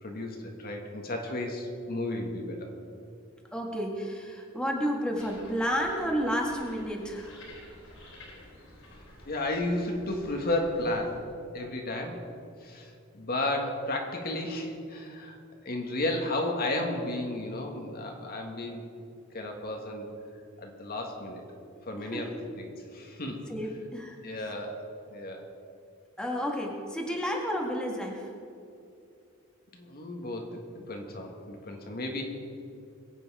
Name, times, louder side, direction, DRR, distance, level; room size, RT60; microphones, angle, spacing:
voice 1, 0.0-2.7 9.2-11.3 11.5-12.2 12.6-15.4 15.6-18.8 19.3-20.1 20.6-21.4 21.8-23.4 24.2-24.8 25.1-25.4 29.7-32.2, left 1 dB, 50° left, 2 dB, 1.7 m, -33 dB
voice 2, 3.5-7.4 22.0-22.4 23.5-24.2 26.2-28.3, equal, 5° left, 0 dB, 1.7 m, -31 dB
sound 1, 5.2-11.2, left 1 dB, 80° left, 3.8 m, -51 dB
22.0 x 8.3 x 4.9 m, 2.6 s
head